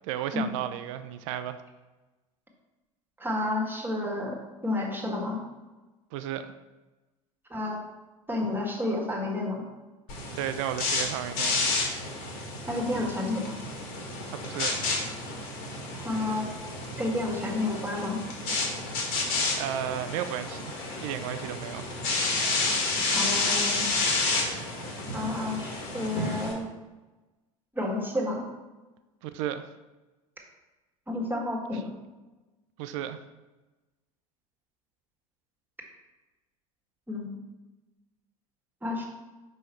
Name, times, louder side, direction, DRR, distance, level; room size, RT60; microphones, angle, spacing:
voice 1, 0.0-1.6 6.1-6.5 10.4-11.7 14.3-14.8 19.5-21.9 29.2-29.6 31.7-31.8 32.8-33.2, right 11 dB, 60° right, 11 dB, 0.5 m, -33 dB
voice 2, 3.2-4.4 4.6-5.4 7.5-7.8 8.3-9.6 12.7-13.5 16.0-16.5 17.0-18.2 23.1-23.9 25.1-26.7 27.7-28.4 31.1-31.9 37.1-37.3 38.8-39.0, left 2 dB, 10° right, 0 dB, 1.7 m, -30 dB
sound 1, 10.1-26.5, left 3 dB, 55° left, 1.9 m, -30 dB
5.5 x 5.2 x 4.4 m, 1.1 s
figure-of-eight pair, 75°, 18 cm